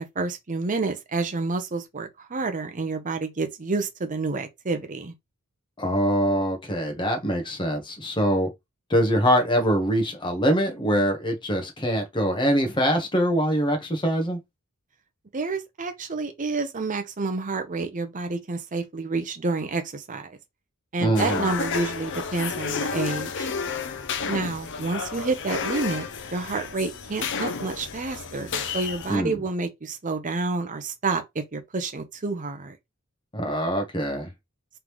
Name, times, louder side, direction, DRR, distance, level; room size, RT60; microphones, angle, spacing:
voice 1, 0.0-5.1 15.3-20.4 20.9-23.5 24.3-32.8, right 3 dB, 35° right, 0.7 m, -29 dB
voice 2, 5.8-8.5 8.9-14.4 21.0-21.5 29.1-29.4 33.3-34.3, equal, 20° left, 1.2 m, -23 dB
sound 1, 21.2-29.2, left 5 dB, 55° left, 0.6 m, -31 dB
3.7 x 3.3 x 3.1 m
head